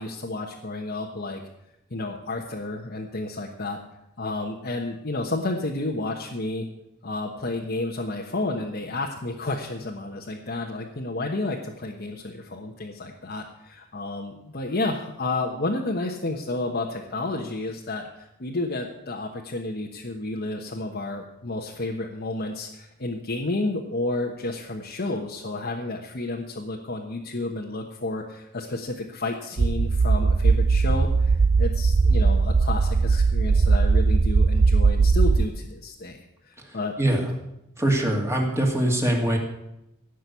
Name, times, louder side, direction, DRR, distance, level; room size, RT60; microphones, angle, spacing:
voice 1, 0.0-1.4 1.9-3.8 4.2-6.7 7.0-36.9, left 2 dB, 50° left, 0 dB, 1.2 m, -31 dB
sound 1, 29.6-35.5, right 4 dB, 50° right, 0.5 m, -19 dB
voice 2, 37.8-39.4, right 1 dB, 15° right, 1 dB, 2.4 m, -22 dB
17.0 x 6.4 x 8.4 m, 0.87 s
head